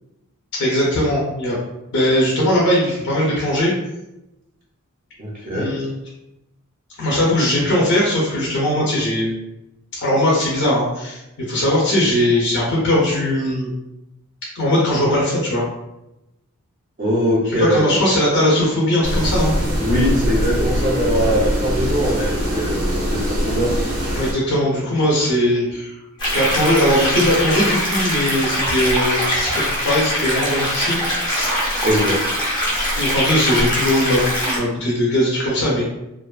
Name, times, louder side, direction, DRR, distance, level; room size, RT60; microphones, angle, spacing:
voice 1, 0.6-1.6 1.9-3.7 5.5-5.9 7.0-9.3 9.9-13.7 14.5-15.6 17.6-19.5 24.1-25.9 26.3-31.6 32.9-35.8, left 1 dB, 55° left, -5 dB, 0.6 m, -19 dB
voice 2, 5.2-5.7 17.0-18.0 19.8-22.8 23.1-23.7 31.8-32.2, equal, 40° right, -6 dB, 0.5 m, -21 dB
sound 1, 19.0-24.3, equal, 85° right, 0.7 m, -22 dB
sound 2, 26.2-34.6, equal, 20° left, 0.7 m, -22 dB
2.4 x 2.3 x 2.3 m, 0.92 s
head